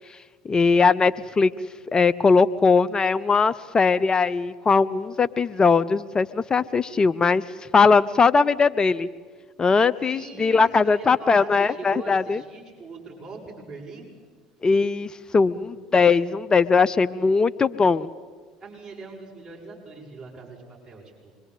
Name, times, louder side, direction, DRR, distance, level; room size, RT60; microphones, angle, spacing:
voice 1, 0.4-1.5 1.9-7.4 7.7-9.1 9.6-12.4 14.6-18.1, left 4 dB, 25° left, 14 dB, 0.6 m, -20 dB
voice 2, 10.1-14.1 18.6-21.3, right 4 dB, 20° right, -4 dB, 7.4 m, -40 dB
25.5 x 22.0 x 8.4 m, 1.6 s
hypercardioid pair, 65°, 3 cm